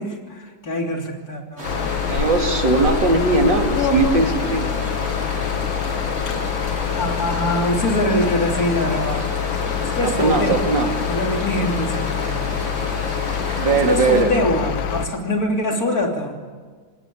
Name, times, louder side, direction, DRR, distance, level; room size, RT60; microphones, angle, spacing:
voice 1, 0.0-1.8 3.8-4.2 6.9-9.3 9.8-10.6 11.0-12.4 13.7-16.4, left 1 dB, 45° left, 2 dB, 3.6 m, -24 dB
sound 1, 1.6-15.1, left 9 dB, 75° left, 1.9 m, -25 dB
sound 2, 1.6-14.2, equal, 35° right, 5.7 m, -31 dB
voice 2, 2.1-4.7 10.0-10.9 13.6-14.3, right 3 dB, 65° right, 3 dB, 3.3 m, -19 dB
26.5 x 19.5 x 8.7 m, 1.5 s
omnidirectional pair, 2.1 m